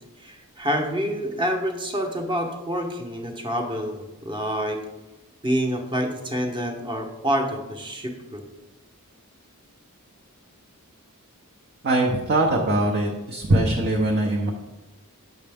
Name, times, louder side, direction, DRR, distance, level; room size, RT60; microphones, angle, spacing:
voice 1, 0.2-4.8 5.4-8.4, equal, 20° right, 4 dB, 0.9 m, -27 dB
voice 2, 11.8-14.5, right 1 dB, 50° right, 0 dB, 0.8 m, -22 dB
7.7 x 6.5 x 3.5 m, 1.0 s
head